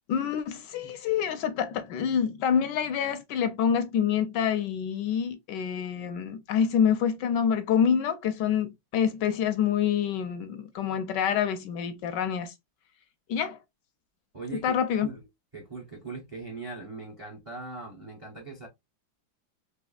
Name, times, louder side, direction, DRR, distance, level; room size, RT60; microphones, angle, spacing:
voice 1, 0.1-12.5 13.3-13.6 14.6-15.1, left 8 dB, 75° left, 1.1 m, -27 dB
voice 2, 14.3-15.2 15.5-18.7, right 3 dB, 40° right, 0.4 m, -40 dB
4.2 x 3.1 x 2.3 m
omnidirectional pair, 2.2 m